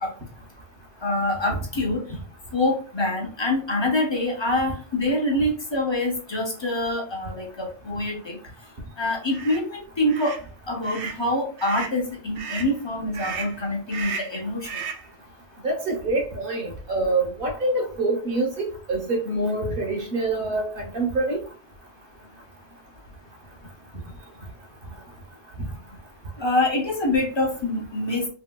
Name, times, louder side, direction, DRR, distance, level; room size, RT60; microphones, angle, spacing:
voice 1, 1.0-2.0 2.5-8.4 9.0-10.3 10.7-14.8 26.4-28.3, left 1 dB, 30° left, 0.7 m, -25 dB
sound 1, 9.3-9.6 10.1-10.4 10.8-11.2 11.6-12.0 12.3-12.7 13.1-13.6 13.9-14.4 14.6-15.1, right 5 dB, 85° right, 1.0 m, -34 dB
voice 2, 15.6-21.4, right 2 dB, 55° right, 1.1 m, -25 dB
3.2 x 2.9 x 2.2 m
omnidirectional pair, 1.1 m